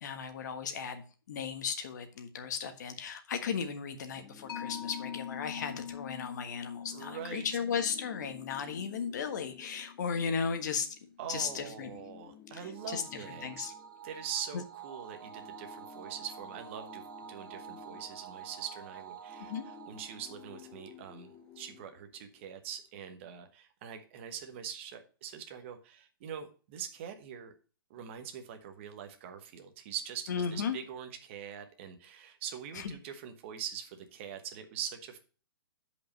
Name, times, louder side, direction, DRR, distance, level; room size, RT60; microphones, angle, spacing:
voice 1, 0.0-10.9 11.3-12.0 12.5-12.6 12.9-13.7 14.5-14.6 19.5-19.7 30.3-30.8 32.7-32.9, left 6 dB, 50° left, 7 dB, 1.5 m, -36 dB
sound 1, 4.1-6.6 6.9-7.1 7.3-10.7 11.3-14.8 15.1-22.7, left 9 dB, 10° left, 0.3 m, -55 dB
Mallet percussion, 4.5-11.6, left 8 dB, 75° left, 1.4 m, -45 dB
voice 2, 6.9-7.5 11.2-13.7 14.0-19.5 19.9-27.5 27.9-35.2, right 8 dB, 30° right, 6 dB, 1.2 m, -43 dB
sound 2, 12.8-21.4, right 8 dB, 60° right, 1.0 m, -49 dB
8.1 x 5.3 x 5.3 m, 0.37 s
hypercardioid pair, 170°, 12 cm